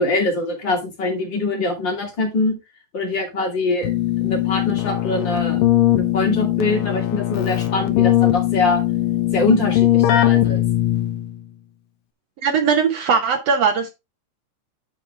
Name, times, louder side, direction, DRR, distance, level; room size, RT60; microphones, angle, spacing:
voice 1, 0.0-2.5 2.9-3.9 4.2-5.6 5.9-8.8 9.3-10.6, left 2 dB, 35° left, 2.9 m, -23 dB
Keyboard (musical), 3.8-11.4, left 14 dB, 90° left, 2.8 m, -20 dB
voice 2, 12.4-13.9, right 6 dB, 65° right, 1.7 m, -19 dB
9.7 x 5.9 x 3.3 m
omnidirectional pair, 3.8 m